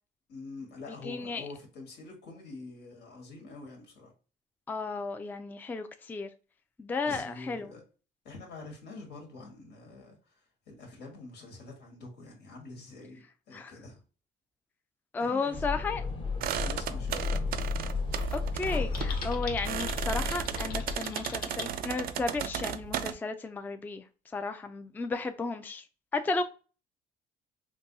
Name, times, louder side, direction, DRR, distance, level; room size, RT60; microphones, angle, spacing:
voice 1, 0.3-4.1 7.0-7.8 8.2-10.2 10.7-14.0 15.2-15.9 16.6-17.3, left 3 dB, 80° left, 1.6 m, -46 dB
voice 2, 1.0-1.5 4.7-6.3 6.8-7.7 13.5-13.7 15.1-16.0 18.3-24.0 24.3-25.8 26.1-26.4, left 3 dB, 10° left, 0.3 m, -33 dB
sound 1, 15.5-21.0, left 4 dB, 30° left, 0.8 m, -33 dB
sound 2, 16.4-23.1, right 10 dB, 60° right, 0.4 m, -35 dB
Typing, 18.9-21.7, left 5 dB, 60° left, 0.8 m, -42 dB
3.9 x 2.6 x 2.6 m
cardioid pair, 110°, 17 cm